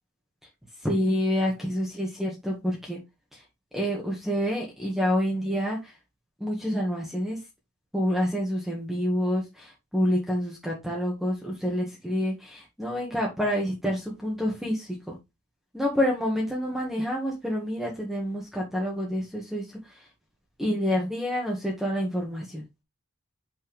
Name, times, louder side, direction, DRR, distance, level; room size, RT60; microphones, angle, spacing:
voice 1, 0.8-3.0 3.7-5.9 6.4-7.4 7.9-15.1 15.7-19.6 20.6-22.6, equal, ahead, 1.7 m, -28 dB
6.3 x 6.0 x 3.5 m
head